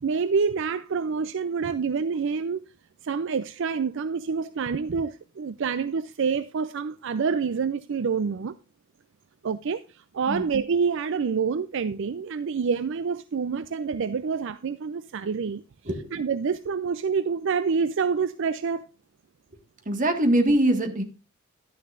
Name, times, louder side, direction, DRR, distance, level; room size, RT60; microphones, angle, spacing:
voice 1, 0.0-2.6 3.0-8.5 9.4-15.6 16.1-18.9, right 5 dB, 60° right, 0.4 m, -27 dB
voice 2, 19.9-21.0, right 1 dB, 40° right, 1.7 m, -22 dB
11.5 x 10.0 x 2.5 m
head